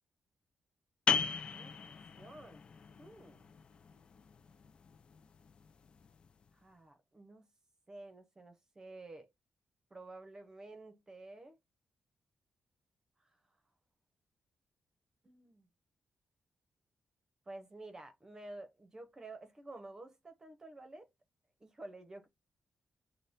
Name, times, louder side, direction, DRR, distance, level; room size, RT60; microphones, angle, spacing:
sound 1, 1.1-6.4, left 6 dB, 40° left, 0.4 m, -38 dB
voice 1, 1.5-2.6 3.0-3.5 6.5-7.5 7.9-9.3 9.9-11.6 15.2-15.7 17.5-21.1 21.6-22.3, right 2 dB, 20° right, 0.8 m, -51 dB
6.5 x 2.2 x 3.5 m
wide cardioid pair, 160°, 3 cm